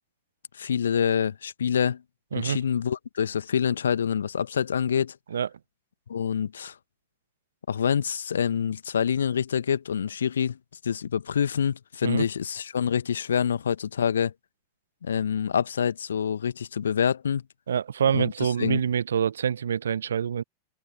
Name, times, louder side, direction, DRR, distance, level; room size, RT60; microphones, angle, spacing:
voice 1, 0.6-2.0 2.3-5.1 6.1-6.7 7.7-10.6 10.8-14.3 15.0-17.4 18.1-18.8, left 7 dB, 70° left, 1.6 m, -26 dB
voice 2, 17.7-20.4, right 8 dB, 65° right, 1.0 m, -26 dB
figure-of-eight pair, 90°, 0 cm